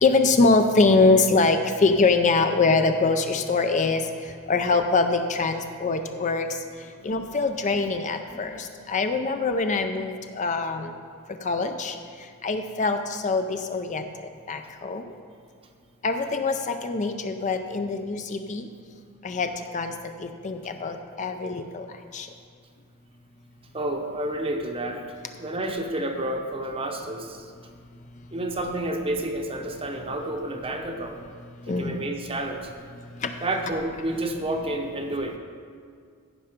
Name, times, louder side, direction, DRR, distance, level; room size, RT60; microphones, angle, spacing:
voice 1, 0.0-4.0 4.5-6.5 7.0-10.9 11.4-11.9 12.4-14.0 14.5-15.0 16.0-18.7 19.2-19.9 20.2-21.9 22.1-22.3 31.7-32.0 33.2-33.3, left 3 dB, 35° left, 7 dB, 0.4 m, -23 dB
voice 2, 23.7-27.5 28.3-31.2 31.7-32.6 33.4-35.4, right 1 dB, 25° right, 4 dB, 0.8 m, -30 dB
15.0 x 5.6 x 5.1 m, 2.2 s
head